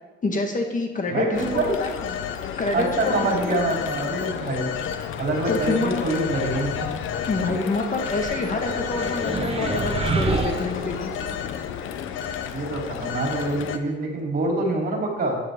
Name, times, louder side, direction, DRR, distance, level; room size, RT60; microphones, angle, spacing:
voice 1, 0.2-2.1 2.6-3.6 5.5-6.0 7.3-11.1, left 3 dB, 40° left, 4 dB, 1.8 m, -27 dB
voice 2, 1.1-1.7 2.7-4.7 5.2-6.9 12.5-15.4, right 2 dB, 50° right, -1 dB, 3.9 m, -26 dB
Telephone, 1.3-13.8, left 8 dB, 85° left, 0.9 m, -31 dB
sound 1, 8.0-11.4, right 4 dB, 30° right, 1.2 m, -29 dB
13.5 x 10.0 x 3.8 m, 1.1 s
cardioid pair, 90°, 20 cm